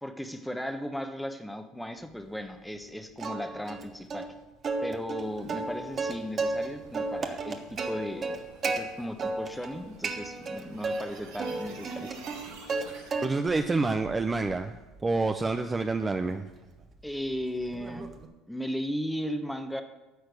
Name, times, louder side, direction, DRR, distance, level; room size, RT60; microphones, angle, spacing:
voice 1, 0.0-4.3 4.8-8.3 8.6-12.2 17.0-18.1 18.5-19.8, equal, 5° left, 7 dB, 1.1 m, -36 dB
Plucked string instrument, 3.2-3.8 4.1-4.2 4.6-6.7 6.9-8.8 9.2-9.7 10.0-11.0 11.4-12.9 13.1-13.6 14.0-18.3, right 3 dB, 35° right, 1.3 m, -33 dB
sound 1, 5.2-13.2, right 4 dB, 85° right, 4.1 m, -50 dB
voice 2, 13.2-16.5, right 3 dB, 20° right, 7 dB, 0.6 m, -28 dB
13.0 x 4.4 x 8.3 m, 1.1 s
supercardioid pair, 100°, 0 cm